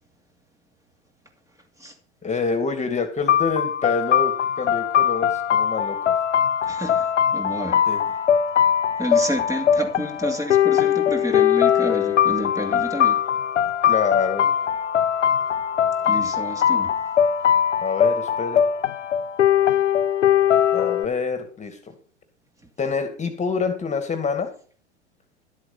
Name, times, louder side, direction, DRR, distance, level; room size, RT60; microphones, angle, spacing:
voice 1, 2.2-6.1 7.9-8.0 13.8-14.5 17.8-18.6 20.7-21.9 22.8-24.5, left 5 dB, 20° left, 2.4 m, -26 dB
sound 1, 3.3-21.0, left 9 dB, 85° left, 0.8 m, -21 dB
voice 2, 6.7-7.8 9.0-13.2 16.0-16.9, equal, 10° right, 2.7 m, -30 dB
12.5 x 8.2 x 5.7 m
hypercardioid pair, 100°, 35 cm